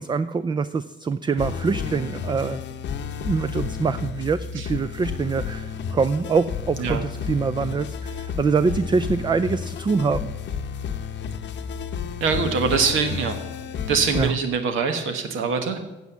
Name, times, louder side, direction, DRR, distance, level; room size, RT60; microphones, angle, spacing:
voice 1, 0.0-2.6 3.2-10.3 14.1-14.4, right 5 dB, 25° right, 12 dB, 0.4 m, -24 dB
sound 1, 1.4-14.3, left 7 dB, 65° left, 0.8 m, -31 dB
voice 2, 12.2-13.4 13.9-15.8, right 5 dB, 80° right, 6 dB, 1.2 m, -23 dB
8.1 x 7.3 x 8.2 m, 1.1 s
cardioid pair, 90°, 20 cm